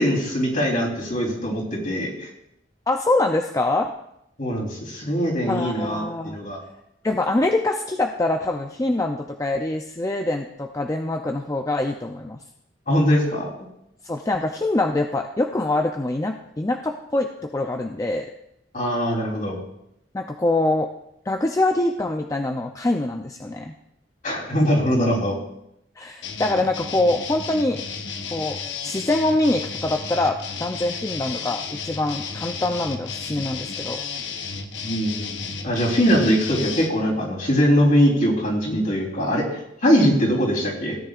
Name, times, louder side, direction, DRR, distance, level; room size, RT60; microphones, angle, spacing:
voice 1, 0.0-2.3 4.4-6.6 12.9-13.5 18.7-19.6 24.2-25.4 34.8-41.0, equal, 45° left, -3 dB, 3.5 m, -22 dB
voice 2, 2.9-3.9 5.5-6.4 7.0-12.4 14.0-18.3 20.1-20.9 21.3-23.7 26.0-27.8 28.3-28.6 28.8-34.0, left 2 dB, 20° left, 4 dB, 0.5 m, -24 dB
sound 1, 26.2-36.9, left 5 dB, 85° left, 1.0 m, -33 dB
17.0 x 9.7 x 2.5 m, 0.80 s
head